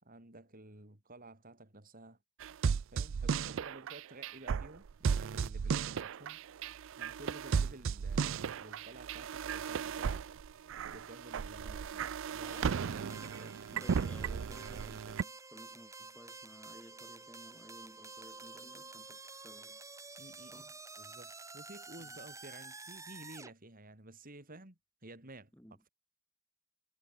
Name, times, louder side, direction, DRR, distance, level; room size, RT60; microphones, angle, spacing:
voice 1, 0.0-2.2 2.9-6.4 6.7-10.6 10.9-13.9 20.2-20.6 21.0-25.5, right 2 dB, 40° right, 3.9 m, -53 dB
sound 1, 2.4-15.2, right 6 dB, 60° right, 0.4 m, -35 dB
voice 2, 11.6-12.0 13.7-19.8 20.5-20.8 22.0-22.3 25.5-25.8, equal, 5° left, 5.5 m, -56 dB
sound 2, 12.4-23.5, right 3 dB, 15° right, 4.9 m, -50 dB
head